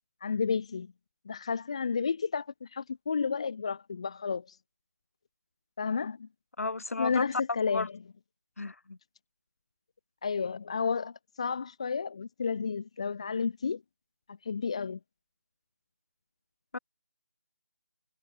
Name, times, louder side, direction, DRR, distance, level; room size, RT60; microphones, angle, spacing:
voice 1, 0.2-0.9 1.3-4.6 5.8-6.3 7.0-7.9 10.2-13.8 14.4-15.0, left 5 dB, 20° left, 0.9 m, -31 dB
voice 2, 6.6-7.2 7.7-7.9 8.6-9.0 16.7-16.8, left 3 dB, 55° left, 3.0 m, -33 dB
figure-of-eight pair, 180°, 9 cm